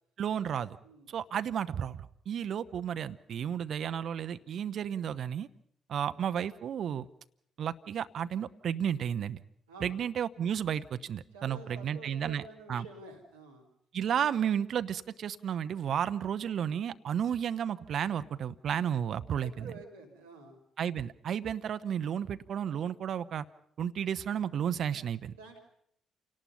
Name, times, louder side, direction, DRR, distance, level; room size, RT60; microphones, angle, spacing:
voice 1, 0.2-0.8 1.1-5.5 5.9-7.1 7.6-9.4 9.8-12.4 12.7-12.9 13.9-19.7 20.8-23.4 23.8-25.4, right 9 dB, 55° right, 12 dB, 0.7 m, -32 dB
voice 2, 0.8-1.2 9.7-10.0 11.3-13.7 19.4-20.6 25.4-25.6, right 3 dB, 85° right, -1 dB, 3.0 m, -49 dB
28.0 x 18.5 x 5.6 m, 0.69 s
figure-of-eight pair, 45°, 0 cm